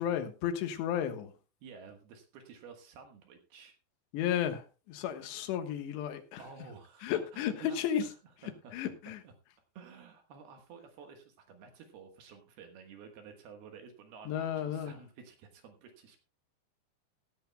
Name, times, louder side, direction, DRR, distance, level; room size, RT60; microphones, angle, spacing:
voice 1, 0.0-1.3 4.1-6.4 7.0-8.0 8.7-9.2 14.3-15.0, left 9 dB, 80° left, 3.4 m, -33 dB
voice 2, 1.6-3.8 6.4-8.1 8.4-8.7 9.2-9.3 9.7-16.2, right 5 dB, 70° right, 3.2 m, -52 dB
17.0 x 13.5 x 2.2 m
omnidirectional pair, 5.1 m